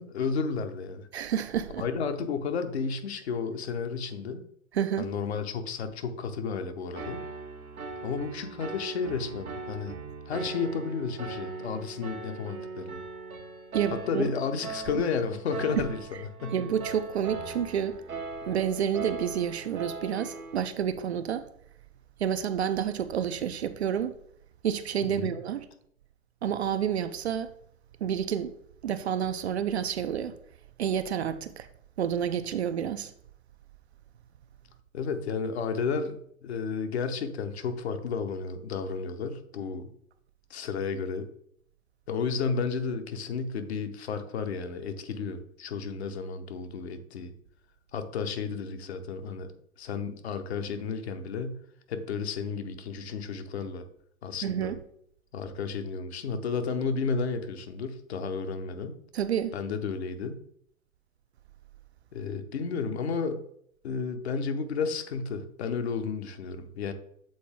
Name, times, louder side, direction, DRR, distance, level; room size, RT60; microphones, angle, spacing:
voice 1, 0.0-1.1 1.8-4.4 5.0-7.2 8.0-9.9 10.3-13.0 13.9-16.0 16.4-16.6 25.1-25.3 34.9-39.9 40.5-41.3 42.1-47.3 47.9-49.5 49.8-51.6 51.9-53.8 54.2-54.7 55.3-58.9 59.5-60.4 62.1-63.4 63.8-66.9, left 5 dB, 50° left, 0.9 m, -32 dB
voice 2, 1.1-1.9 4.7-5.1 13.7-14.2 15.8-15.9 16.5-18.0 18.5-21.5 22.2-24.1 24.6-25.6 26.4-27.5 28.0-28.5 28.8-30.4 30.8-31.7 32.0-33.1 54.4-54.8 59.1-59.6, right 9 dB, 50° right, 0.5 m, -29 dB
Piano, 6.9-20.7, right 4 dB, 80° right, 1.0 m, -40 dB
7.8 x 4.0 x 3.5 m
figure-of-eight pair, 110°, 42 cm